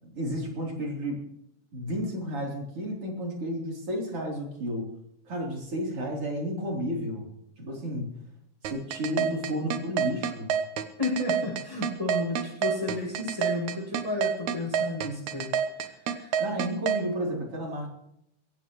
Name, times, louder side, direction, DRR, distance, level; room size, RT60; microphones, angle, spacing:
voice 1, 0.0-1.2 1.7-4.9 5.3-7.3 7.6-8.1 8.6-10.5 16.4-17.9, equal, 45° right, -1 dB, 4.5 m, -32 dB
sound 1, 8.6-17.0, right 8 dB, 70° right, 2.3 m, -27 dB
voice 2, 11.0-16.4, left 2 dB, 10° left, -8 dB, 6.8 m, -32 dB
23.0 x 16.0 x 3.2 m, 0.76 s
omnidirectional pair, 3.6 m